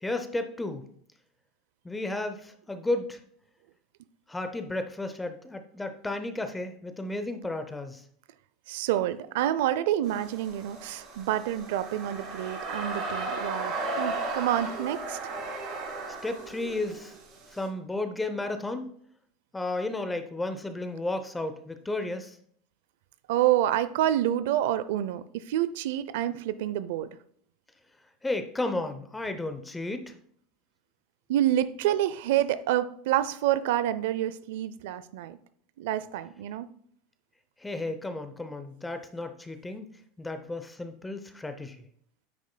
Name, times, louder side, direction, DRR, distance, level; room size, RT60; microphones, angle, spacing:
voice 1, 0.0-0.8 1.8-3.2 4.3-8.0 16.2-17.1 17.5-18.9 19.5-22.3 28.2-30.1 37.6-39.9 40.2-41.8, left 2 dB, 5° left, 8 dB, 0.6 m, -33 dB
voice 2, 8.7-15.2 23.3-27.1 31.3-35.4 35.8-36.7, right 12 dB, 75° right, 14 dB, 0.5 m, -28 dB
sound 1, 10.1-17.6, right 3 dB, 35° right, 2.7 m, -35 dB
9.6 x 8.2 x 2.2 m, 0.64 s
supercardioid pair, 155°, 0 cm